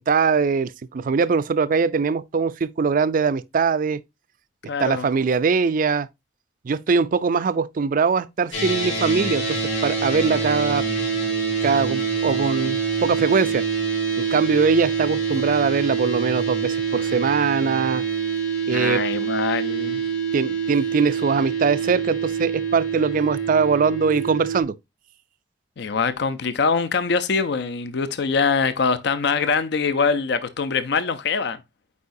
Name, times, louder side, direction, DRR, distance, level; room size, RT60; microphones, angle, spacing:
voice 1, 0.0-4.0 4.8-6.1 6.6-10.8 11.6-13.6 14.2-18.0 18.7-19.0 20.3-24.7, right 5 dB, 50° right, 0.4 m, -22 dB
voice 2, 4.7-5.1 18.7-20.0 25.8-31.6, left 5 dB, 65° left, 0.6 m, -23 dB
sound 1, 8.5-24.6, right 6 dB, 85° left, 3.7 m, -25 dB
8.3 x 4.7 x 2.6 m
head